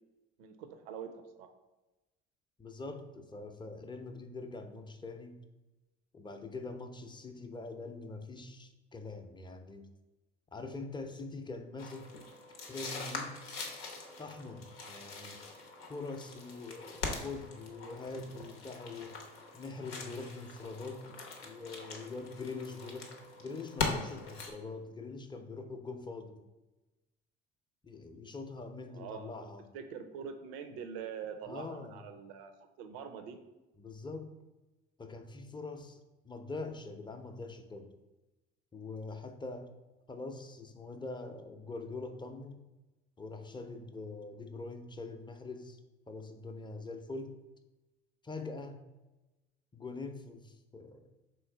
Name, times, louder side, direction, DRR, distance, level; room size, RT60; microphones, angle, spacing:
voice 1, 0.4-1.5 28.9-29.5 29.7-32.5 32.8-33.4, right 7 dB, 80° right, 8 dB, 0.5 m, -44 dB
voice 2, 2.6-5.4 6.1-9.9 10.5-12.1 12.7-13.4 14.2-15.4 15.9-19.2 19.5-21.1 21.4-23.1 23.4-26.4 27.8-29.6 31.5-32.0 33.8-34.3 35.0-37.9 38.7-39.7 40.1-42.6 43.2-45.8 46.1-47.4 48.2-48.8 49.7-51.1, left 3 dB, 15° left, 6 dB, 0.5 m, -43 dB
sound 1, 11.8-24.5, left 3 dB, 90° left, 0.7 m, -42 dB
3.5 x 3.1 x 4.5 m, 1.1 s
hypercardioid pair, 65°, 30 cm